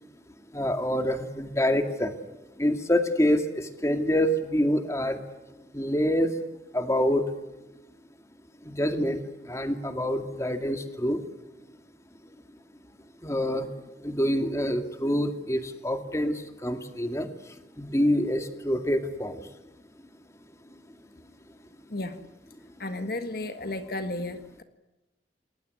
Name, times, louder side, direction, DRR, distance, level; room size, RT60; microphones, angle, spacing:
voice 1, 0.5-2.1 2.6-5.2 5.7-6.3 6.7-7.3 8.6-11.2 13.2-13.7 14.0-19.5, equal, 15° left, 6 dB, 2.2 m, -26 dB
voice 2, 22.8-24.6, left 2 dB, 55° left, 8 dB, 1.7 m, -33 dB
29.0 x 21.0 x 9.5 m, 1.0 s
head